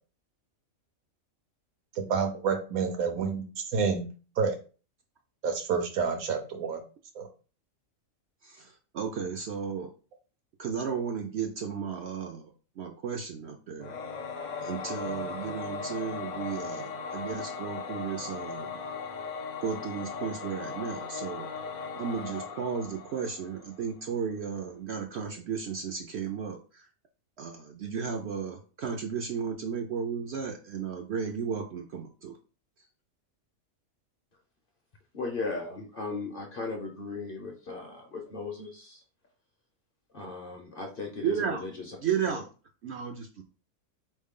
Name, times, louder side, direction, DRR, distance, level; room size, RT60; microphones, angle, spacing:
voice 1, 2.0-4.1 4.4-4.6 5.4-6.8 7.1-7.3, right 5 dB, 80° right, 6 dB, 1.3 m, -29 dB
voice 2, 8.4-9.9 10.6-12.5 12.8-13.9 14.6-18.8 19.6-21.5 21.9-26.9 27.4-32.4 41.2-41.6 42.0-42.4 42.8-43.4, right 7 dB, 65° right, 4 dB, 0.7 m, -34 dB
Singing / Musical instrument, 13.8-23.8, left 5 dB, 70° left, 0.4 m, -38 dB
voice 3, 35.1-39.0 40.1-42.0 42.2-42.4, left 4 dB, 45° left, 3 dB, 0.8 m, -37 dB
4.2 x 3.2 x 3.6 m, 0.36 s
omnidirectional pair, 1.5 m